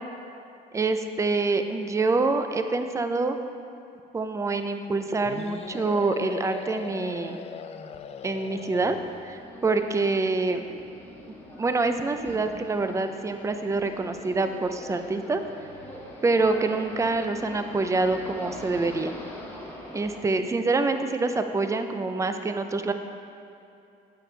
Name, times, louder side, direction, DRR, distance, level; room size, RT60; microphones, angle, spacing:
voice 1, 0.7-3.4 4.1-7.4 8.2-9.0 9.2-10.7 11.6-15.4 16.2-19.1 19.9-22.9, right 3 dB, 20° right, 7 dB, 0.5 m, -26 dB
sound 1, 5.2-9.4, left 7 dB, 40° left, 0.4 m, -40 dB
sound 2, 8.7-20.2, left 1 dB, 10° left, 1.5 m, -43 dB
9.0 x 7.6 x 3.3 m, 2.6 s
cardioid pair, 110°, 17 cm